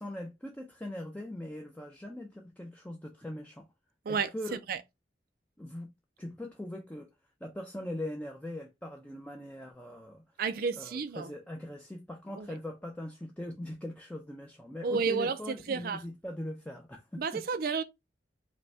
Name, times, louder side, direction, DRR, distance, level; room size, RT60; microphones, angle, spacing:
voice 1, 0.0-3.7 4.1-4.6 5.6-5.9 6.2-7.1 7.4-10.2 10.8-17.4, left 1 dB, 10° left, 0.5 m, -41 dB
voice 2, 10.4-11.3 12.4-12.5 14.8-16.0 17.2-17.8, right 5 dB, 55° right, 0.4 m, -31 dB
5.1 x 2.3 x 3.3 m
head